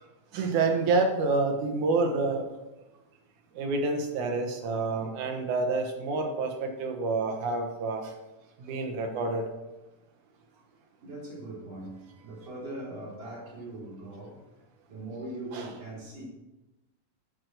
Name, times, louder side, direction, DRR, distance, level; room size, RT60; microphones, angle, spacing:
voice 1, 0.3-2.4 3.6-8.1 8.6-9.5 15.5-15.7, right 3 dB, 70° right, 4 dB, 2.6 m, -28 dB
voice 2, 11.0-14.4 14.9-16.2, right 2 dB, 50° right, -6 dB, 4.7 m, -41 dB
8.6 x 6.2 x 6.7 m, 1.0 s
omnidirectional pair, 3.7 m